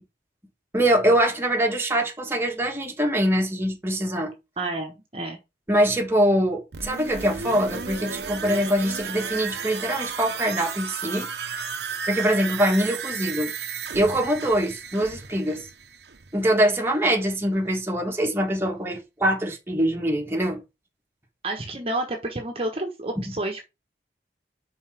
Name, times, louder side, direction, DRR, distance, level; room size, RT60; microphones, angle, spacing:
voice 1, 0.7-4.3 5.7-11.6 12.1-13.5 13.9-15.7 16.3-20.6, right 1 dB, 15° right, 1.6 m, -23 dB
voice 2, 4.6-5.4 21.4-23.6, right 2 dB, 35° right, 1.2 m, -30 dB
sound 1, 6.7-16.4 16.8-16.9, right 6 dB, 70° right, 0.9 m, -34 dB
5.6 x 4.6 x 5.9 m
head